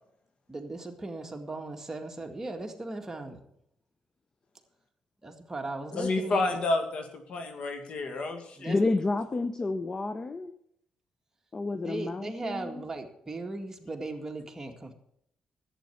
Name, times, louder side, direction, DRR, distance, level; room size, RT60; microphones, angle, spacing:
voice 1, 0.5-3.4 5.2-6.6 8.6-8.8 11.7-14.9, right 2 dB, 20° right, 3 dB, 2.0 m, -38 dB
voice 2, 5.9-8.7, left 2 dB, 65° left, 6 dB, 2.1 m, -30 dB
voice 3, 8.7-10.5 11.5-12.8, left 3 dB, 30° left, 10 dB, 0.8 m, -30 dB
11.5 x 9.0 x 7.2 m, 0.73 s
cardioid pair, 75°, 2 cm